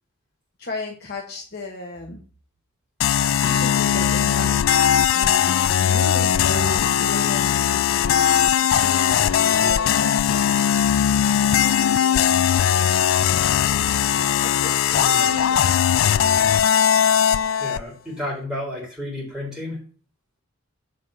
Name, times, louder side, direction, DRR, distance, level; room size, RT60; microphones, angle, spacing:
voice 1, 0.6-2.2 3.3-4.8 5.1-10.6 11.3-12.9 13.5-15.9, left 1 dB, 50° left, 1 dB, 1.1 m, -36 dB
sound 1, 3.0-17.8, left 9 dB, 75° left, 0.3 m, -19 dB
voice 2, 14.9-15.3 17.6-19.8, left 1 dB, 5° right, -3 dB, 3.8 m, -32 dB
8.0 x 4.8 x 5.6 m, 0.42 s
head